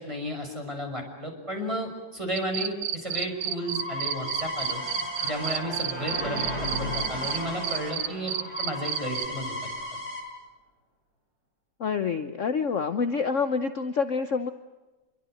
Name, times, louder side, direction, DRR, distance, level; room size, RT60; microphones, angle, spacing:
voice 1, 0.0-4.8 5.2-8.3 8.6-9.6, equal, 15° right, 2 dB, 6.3 m, -33 dB
sound 1, 2.4-7.4 7.6-9.3, right 10 dB, 90° right, 1.8 m, -29 dB
sound 2, 3.1-7.9 8.2-10.2, left 1 dB, 15° left, 6.8 m, -36 dB
sound 3, 4.7-9.7, equal, 55° right, 7.9 m, -37 dB
voice 2, 11.8-14.5, left 5 dB, 50° left, 9 dB, 1.2 m, -27 dB
27.0 x 23.5 x 7.9 m, 1.2 s
omnidirectional pair, 1.9 m